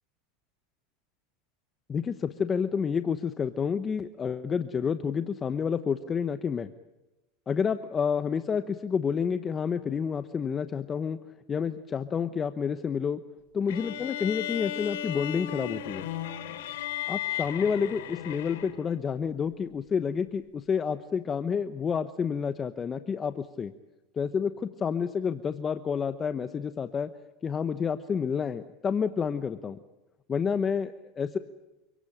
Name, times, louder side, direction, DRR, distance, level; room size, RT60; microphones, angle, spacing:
voice 1, 1.9-6.7 7.5-11.2 11.5-13.2 13.5-16.1 17.1-23.7 24.2-27.1 27.4-29.8 30.3-31.4, left 6 dB, 25° left, 10 dB, 1.0 m, -29 dB
sound 1, 13.7-19.0, left 11 dB, 85° left, 3.4 m, -35 dB
28.5 x 18.0 x 9.0 m, 1.0 s
supercardioid pair, 120°, 0 cm